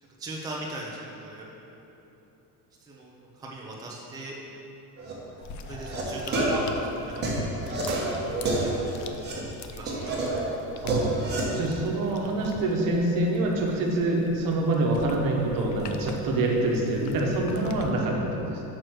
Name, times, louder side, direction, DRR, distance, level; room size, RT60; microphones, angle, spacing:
voice 1, 0.2-1.8 2.8-4.4 5.7-7.5 8.0-9.1 9.7-10.2, right 1 dB, 10° right, -4 dB, 0.6 m, -40 dB
sound 1, 5.0-5.1 5.6-6.0 6.3-9.4 9.9-11.4, right 2 dB, 25° right, 1.2 m, -28 dB
sound 2, 5.4-17.9, left 4 dB, 50° left, 0.5 m, -43 dB
sound 3, 7.8-8.9, right 5 dB, 90° right, 1.0 m, -43 dB
voice 2, 10.8-11.1 11.5-18.6, right 2 dB, 55° right, -1 dB, 1.2 m, -26 dB
6.3 x 4.8 x 6.1 m, 3.0 s
cardioid pair, 155°, 39 cm